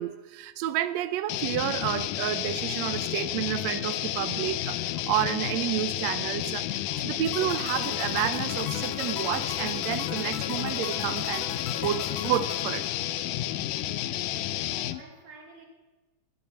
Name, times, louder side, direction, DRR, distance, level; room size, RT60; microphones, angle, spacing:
voice 1, 0.0-11.5 11.8-12.9, right 12 dB, 75° right, 1.6 m, -30 dB
sound 1, 1.3-15.0, left 13 dB, 80° left, 2.3 m, -31 dB
sound 2, 7.2-13.5, left 7 dB, 60° left, 2.0 m, -39 dB
voice 2, 13.8-15.7, right 1 dB, 40° right, 3.6 m, -51 dB
19.5 x 12.0 x 5.6 m
omnidirectional pair, 3.8 m